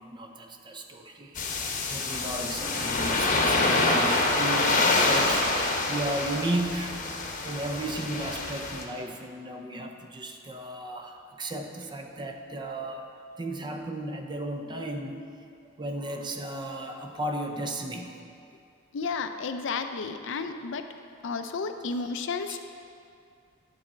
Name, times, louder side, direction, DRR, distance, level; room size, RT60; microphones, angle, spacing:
voice 1, 0.0-7.0 7.4-13.1 13.4-15.3 15.8-18.2 22.4-22.6, right 1 dB, 20° right, 4 dB, 0.6 m, -35 dB
sound 1, 1.3-8.8, left 2 dB, 40° left, 0.9 m, -26 dB
sound 2, 2.6-7.9, left 1 dB, 15° left, 0.8 m, -43 dB
voice 2, 18.9-20.8 21.2-22.6, left 4 dB, 65° left, 8 dB, 0.5 m, -32 dB
9.4 x 4.2 x 7.3 m, 2.4 s
head